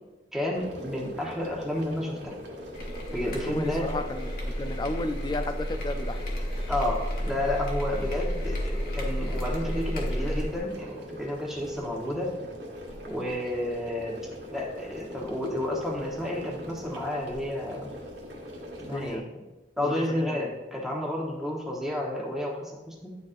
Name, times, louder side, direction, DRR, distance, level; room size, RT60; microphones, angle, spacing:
voice 1, 0.3-2.4 3.1-3.8 6.7-12.3 13.1-14.2 14.5-17.9 18.9-19.3 19.8-23.1, left 1 dB, ahead, -2 dB, 1.1 m, -31 dB
sound 1, 0.5-19.2, equal, 75° right, 1.3 m, -42 dB
sound 2, 2.7-10.6, equal, 55° left, 1.4 m, -32 dB
voice 2, 3.3-6.3 18.8-19.3 19.8-20.4, left 2 dB, 25° left, 10 dB, 0.4 m, -34 dB
10.5 x 4.1 x 2.5 m, 1.2 s
head